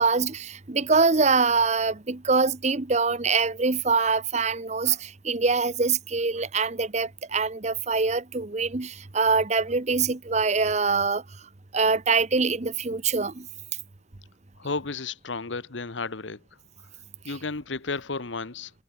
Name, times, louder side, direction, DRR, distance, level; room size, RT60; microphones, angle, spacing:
voice 1, 0.0-11.2 11.7-13.5, right 4 dB, 35° right, 0.9 m, -24 dB
voice 2, 14.6-16.4 17.2-18.7, left 4 dB, 75° left, 1.2 m, -32 dB
head